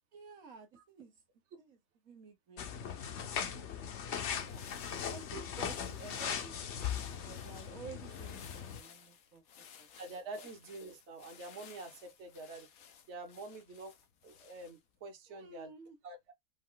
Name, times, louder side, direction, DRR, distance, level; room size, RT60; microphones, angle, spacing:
voice 1, 0.1-1.2 1.6-1.8 2.0-4.7 5.1-9.9 15.3-16.0, right 5 dB, 80° right, 1.6 m, -53 dB
sound 1, 2.6-8.8, left 8 dB, 60° left, 1.0 m, -39 dB
sound 2, 3.9-15.0, left 7 dB, 85° left, 1.3 m, -58 dB
voice 2, 10.0-12.7 13.1-13.9 14.2-15.7 16.0-16.3, right 2 dB, 55° right, 1.4 m, -46 dB
5.2 x 2.4 x 3.8 m
omnidirectional pair, 1.4 m